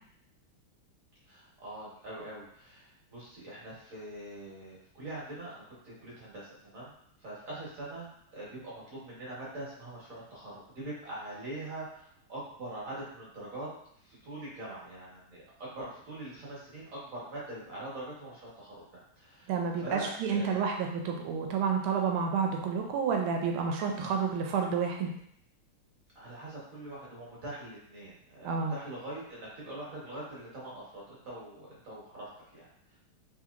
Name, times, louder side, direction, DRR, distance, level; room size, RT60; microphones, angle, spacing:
voice 1, 1.3-6.9 7.2-13.7 14.0-18.8 19.2-20.7 26.1-33.0, right 1 dB, 50° right, -6 dB, 1.3 m, -43 dB
voice 2, 19.5-25.1 28.4-28.7, right 6 dB, 85° right, 2 dB, 1.4 m, -30 dB
3.7 x 2.8 x 2.4 m, 0.70 s
omnidirectional pair, 2.3 m